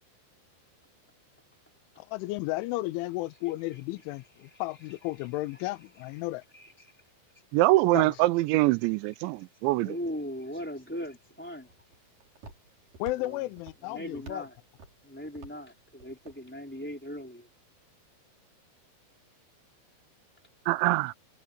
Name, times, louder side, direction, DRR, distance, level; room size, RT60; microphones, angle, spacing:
voice 1, 2.1-6.4 7.9-8.1 13.0-14.4, left 19 dB, 90° left, 3.2 m, -33 dB
voice 2, 3.4-4.0 4.4-6.1 6.5-7.0 9.8-11.7 13.1-13.5 13.8-14.6 15.0-17.5, equal, 5° left, 2.7 m, -40 dB
voice 3, 7.5-10.0 20.7-21.1, right 19 dB, 85° right, 2.8 m, -24 dB
Walk footsteps, 11.0-17.2, right 3 dB, 45° right, 7.2 m, -53 dB
omnidirectional pair, 5.4 m